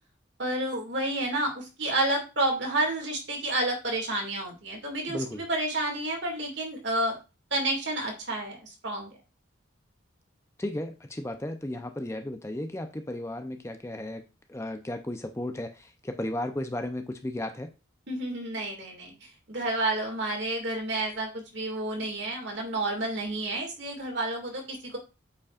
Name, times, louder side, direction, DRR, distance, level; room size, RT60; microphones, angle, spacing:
voice 1, 0.4-7.2 7.5-9.1 18.1-25.0, right 2 dB, 65° right, 2 dB, 2.1 m, -30 dB
voice 2, 5.1-5.4 10.6-14.2 14.5-17.7, left 1 dB, 15° left, 7 dB, 0.5 m, -34 dB
8.5 x 5.3 x 2.4 m, 0.29 s
head